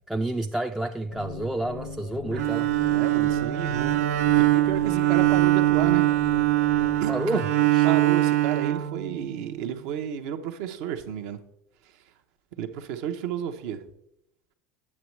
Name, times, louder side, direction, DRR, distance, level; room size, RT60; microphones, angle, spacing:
voice 1, 0.1-2.7 7.1-7.5 7.7-7.9, right 1 dB, 5° right, 0.3 m, -29 dB
sound 1, 1.1-7.1, left 3 dB, 75° left, 0.8 m, -39 dB
Bowed string instrument, 2.3-9.5, right 16 dB, 85° right, 0.4 m, -22 dB
voice 2, 2.9-6.1 7.0-7.4 7.8-11.4 11.8-12.0 12.6-13.8, right 9 dB, 70° right, 0.7 m, -32 dB
8.5 x 7.1 x 3.1 m
hypercardioid pair, 90°, 8 cm